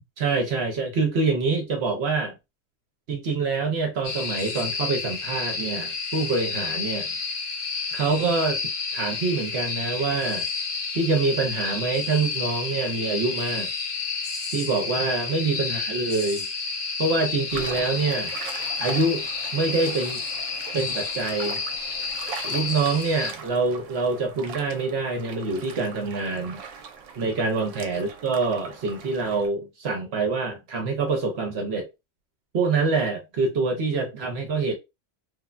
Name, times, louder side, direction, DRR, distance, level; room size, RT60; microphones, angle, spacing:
voice 1, 0.2-2.3 3.1-7.1 7.9-8.6 8.9-10.5 10.9-13.7 14.5-16.5 17.0-18.4 18.8-19.3 19.5-20.2 20.7-21.6 22.4-26.6 27.2-31.9 32.5-34.7, right 3 dB, 65° right, 0.9 m, -25 dB
sound 1, 4.0-23.3, left 4 dB, 85° left, 1.2 m, -30 dB
sound 2, 17.5-29.5, right 6 dB, 90° right, 1.0 m, -41 dB
3.2 x 2.1 x 2.4 m
omnidirectional pair, 1.3 m